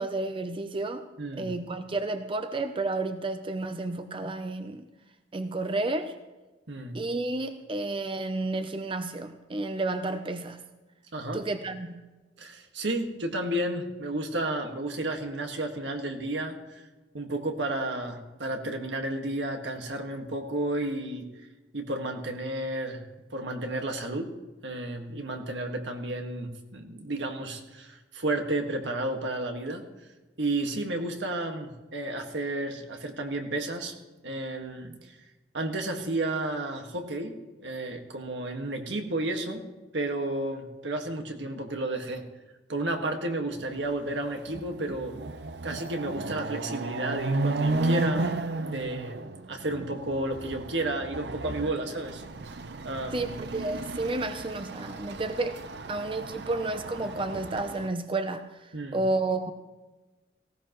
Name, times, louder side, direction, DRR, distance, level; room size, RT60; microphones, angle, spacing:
voice 1, 0.0-1.0 1.4-4.9 5.3-6.2 6.9-10.6 11.3-12.1 53.1-55.6 55.9-59.5, right 2 dB, 30° right, 0.6 m, -31 dB
voice 2, 1.2-1.5 6.7-7.0 11.1-11.4 12.4-16.8 17.1-21.5 21.7-23.0 23.3-24.3 24.6-29.8 30.4-33.9 34.2-35.2 35.5-39.6 39.9-42.2 42.7-45.2 45.6-48.3 48.6-52.2 52.8-53.3 58.7-59.0, right 1 dB, 85° right, 1.7 m, -32 dB
Chatter / Car passing by / Motorcycle, 43.9-44.0 44.3-57.9, right 2 dB, 65° right, 0.7 m, -33 dB
18.5 x 16.0 x 3.1 m
head